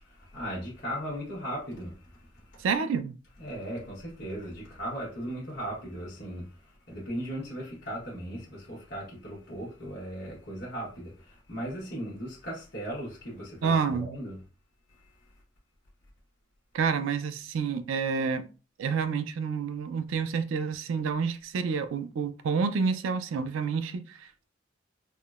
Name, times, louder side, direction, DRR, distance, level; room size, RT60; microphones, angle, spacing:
voice 1, 0.0-2.6 3.4-6.5 6.9-14.4, equal, 55° left, 1.0 m, -37 dB
voice 2, 2.6-3.2 13.6-14.2 16.7-18.5 18.8-24.5, right 5 dB, 85° right, 0.3 m, -29 dB
3.5 x 2.0 x 2.3 m
head